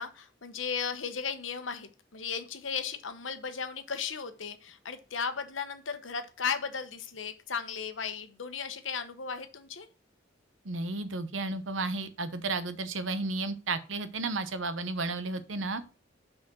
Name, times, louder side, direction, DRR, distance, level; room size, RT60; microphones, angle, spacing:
voice 1, 0.0-9.9, left 6 dB, 85° left, 9 dB, 1.1 m, -36 dB
voice 2, 10.6-15.8, right 3 dB, 85° right, 12 dB, 0.9 m, -33 dB
6.2 x 5.1 x 6.2 m, 0.34 s
head